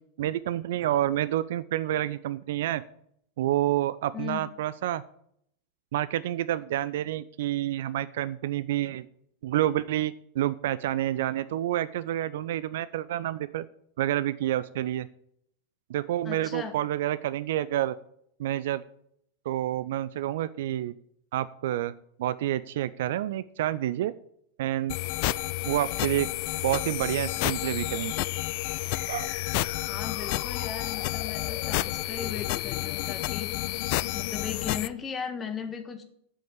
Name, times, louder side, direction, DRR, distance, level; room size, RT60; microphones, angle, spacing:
voice 1, 0.2-2.8 3.4-5.0 5.9-9.0 9.4-13.7 14.0-15.1 15.9-18.0 18.4-18.8 19.5-20.9 21.3-21.9 22.2-24.1 24.6-24.9 25.7-26.3 26.6-28.1 29.1-29.3, right 13 dB, 55° right, 16 dB, 0.4 m, -28 dB
voice 2, 4.1-4.5 16.2-16.8 29.9-33.6 34.1-36.0, left 7 dB, 20° left, 8 dB, 1.5 m, -37 dB
sound 1, 24.9-34.9, left 18 dB, 45° left, 0.4 m, -30 dB
7.8 x 7.4 x 8.4 m, 0.69 s
figure-of-eight pair, 90°, 0 cm